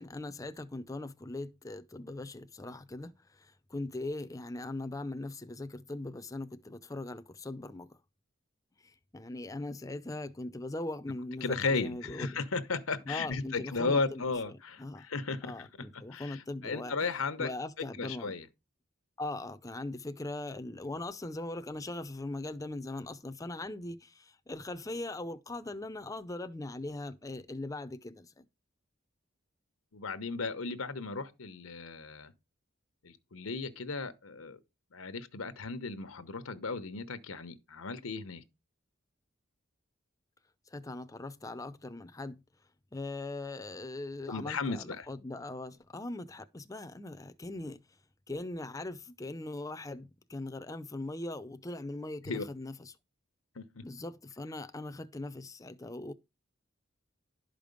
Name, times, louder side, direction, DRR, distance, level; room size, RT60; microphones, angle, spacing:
voice 1, 0.0-8.0 8.8-12.4 13.1-15.1 15.4-17.1 17.4-18.4 19.2-28.5 40.7-42.4 42.9-47.8 48.3-52.9 53.8-56.1, left 2 dB, 15° left, 0.6 m, -40 dB
voice 2, 11.4-17.5 17.8-18.4 29.9-32.3 33.0-34.6 34.9-38.4 44.3-45.1 52.3-52.4 53.6-53.8, left 4 dB, 90° left, 1.0 m, -35 dB
11.5 x 5.1 x 5.2 m
head